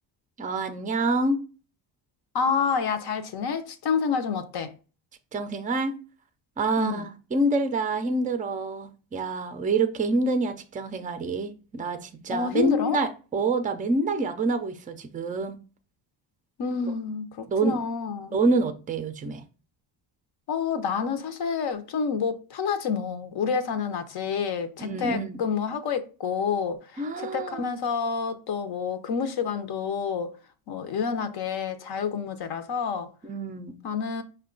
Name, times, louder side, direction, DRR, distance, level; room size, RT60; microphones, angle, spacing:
voice 1, 0.4-1.4 5.3-5.9 6.6-15.6 17.5-17.8 18.3-19.4 24.8-25.4 27.0-27.6 33.2-33.8, right 2 dB, 20° right, 0.4 m, -27 dB
voice 2, 2.3-4.7 6.8-7.1 12.3-13.0 16.6-18.4 20.5-30.3 30.7-33.1 33.8-34.2, left 6 dB, 55° left, 0.7 m, -28 dB
5.6 x 2.2 x 3.7 m
cardioid pair, 145°, 45 cm